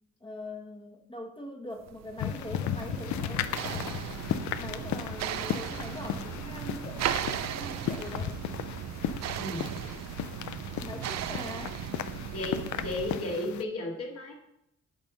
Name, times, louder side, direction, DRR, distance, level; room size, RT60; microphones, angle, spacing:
voice 1, 0.2-4.0 4.6-7.0 7.5-8.4 10.8-11.8, left 1 dB, 15° left, 3 dB, 1.3 m, -42 dB
sound 1, 1.9-13.4, right 10 dB, 60° right, 0.5 m, -37 dB
sound 2, 2.2-13.6, left 11 dB, 70° left, 0.5 m, -36 dB
voice 2, 9.4-9.8 12.3-14.3, left 1 dB, 50° left, -1 dB, 2.3 m, -34 dB
10.5 x 3.6 x 5.3 m, 0.79 s
cardioid pair, 90°, 30 cm